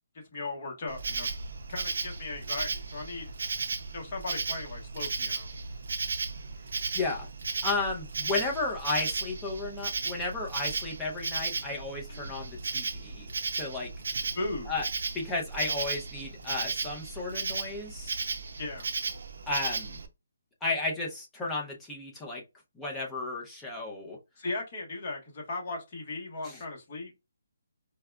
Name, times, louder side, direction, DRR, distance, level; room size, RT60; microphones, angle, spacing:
voice 1, 0.3-1.3 1.7-3.3 3.9-5.5 12.1-12.3 14.3-14.7 18.6-18.9 24.4-27.1, left 2 dB, 30° left, 1.2 m, -37 dB
Insect, 0.9-20.1, right 4 dB, 60° right, 0.6 m, -35 dB
voice 2, 6.9-7.3 7.6-13.3 13.5-13.9 14.7-14.9 15.1-18.2 19.5-20.0 20.6-22.4 22.8-24.2 26.4-26.6, left 3 dB, 5° left, 0.6 m, -33 dB
4.6 x 2.3 x 2.2 m
hypercardioid pair, 175°, 0 cm